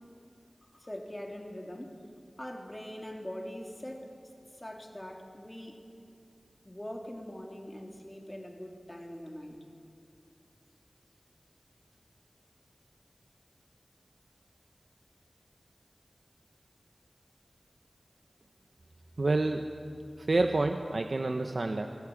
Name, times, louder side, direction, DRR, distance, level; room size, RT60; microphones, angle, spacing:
voice 1, 0.6-1.9 2.4-5.8 6.6-9.6, equal, 20° left, 1 dB, 3.3 m, -43 dB
voice 2, 19.2-19.7 20.2-21.9, right 2 dB, 65° right, 5 dB, 1.0 m, -28 dB
23.5 x 17.5 x 8.6 m, 2.4 s
wide cardioid pair, 55°, 0 cm